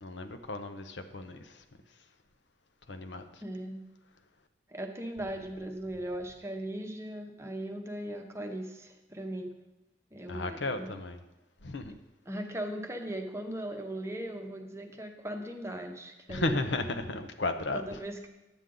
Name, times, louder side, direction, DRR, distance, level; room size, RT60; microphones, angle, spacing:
voice 1, 0.0-1.6 2.9-3.4 10.3-11.2 11.6-11.9 16.3-18.0, left 2 dB, 70° left, 7 dB, 0.8 m, -34 dB
voice 2, 3.4-3.8 4.7-9.5 10.1-10.9 12.3-16.8 17.7-18.3, right 1 dB, 15° right, 4 dB, 0.8 m, -38 dB
10.5 x 8.1 x 3.8 m, 1.0 s
head